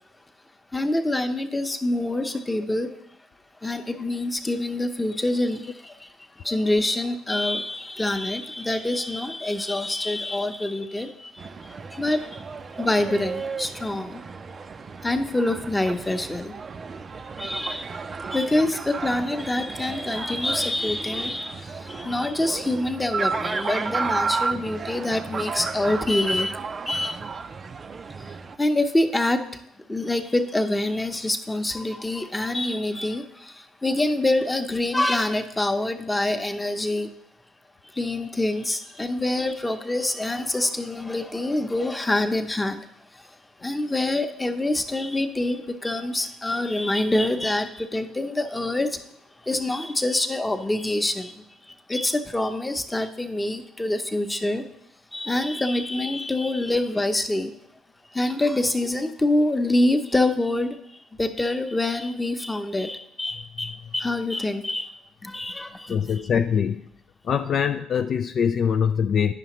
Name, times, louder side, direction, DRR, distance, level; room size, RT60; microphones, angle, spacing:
voice 1, 0.7-2.9 3.6-6.1 6.4-11.5 11.9-12.4 12.8-14.2 15.0-16.6 17.4-18.0 18.3-26.6 26.9-27.2 28.2-29.6 29.9-37.1 37.9-42.9 43.1-49.0 49.4-54.6 55.1-57.5 58.1-64.9 65.2-66.0, left 1 dB, 15° left, 7 dB, 0.8 m, -26 dB
sound 1, 11.4-28.6, right 4 dB, 40° right, 0.4 m, -33 dB
voice 2, 65.9-66.9 67.2-69.3, left 7 dB, 55° left, 7 dB, 0.3 m, -23 dB
9.8 x 5.6 x 3.0 m, 0.73 s
hypercardioid pair, 55°, 0 cm